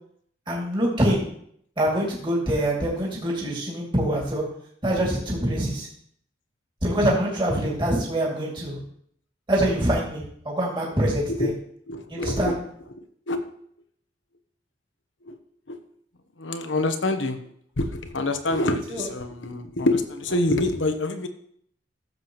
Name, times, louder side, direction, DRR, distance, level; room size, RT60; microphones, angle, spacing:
voice 1, 0.5-1.2 1.8-4.4 4.8-5.9 6.8-8.8 9.5-11.5 12.1-12.6 18.9-19.1, right 1 dB, 25° right, -4 dB, 2.6 m, -24 dB
voice 2, 11.9-12.6 13.3-13.4 15.3-15.4 15.7-15.8 16.4-17.4 17.8-21.3, left 2 dB, 80° left, 8 dB, 1.1 m, -26 dB
14.5 x 7.5 x 3.1 m, 0.66 s
head